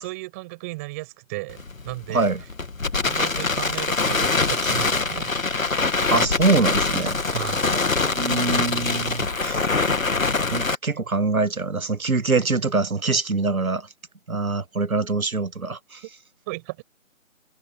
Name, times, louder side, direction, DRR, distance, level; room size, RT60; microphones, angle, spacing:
voice 1, 0.0-2.3 3.0-5.4 7.3-7.7 16.5-16.8, right 23 dB, 10° right, 7.7 m, -34 dB
Crackle, 1.5-10.7, left 3 dB, 75° left, 2.4 m, -24 dB
voice 2, 2.1-2.4 6.1-7.4 8.1-9.6 10.5-13.9 14.3-16.0, right 3 dB, 85° right, 1.7 m, -24 dB
figure-of-eight pair, 170°, 41 cm